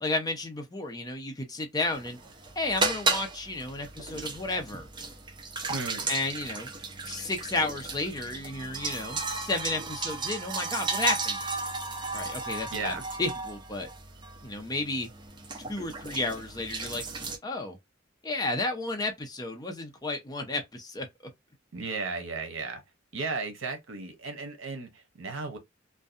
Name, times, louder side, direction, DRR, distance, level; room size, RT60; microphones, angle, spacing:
voice 1, 0.0-2.2 2.6-4.9 6.1-6.7 7.0-11.4 12.1-13.9 14.4-15.1 15.7-17.0 17.4-17.8 18.2-21.1, left 2 dB, 20° left, 0.6 m, -32 dB
sound 1, 1.8-17.4, right 3 dB, 25° right, 0.5 m, -34 dB
voice 2, 5.7-6.1 12.7-13.0 21.7-22.8 23.1-25.6, right 4 dB, 85° right, 0.8 m, -35 dB
2.6 x 2.2 x 2.4 m
head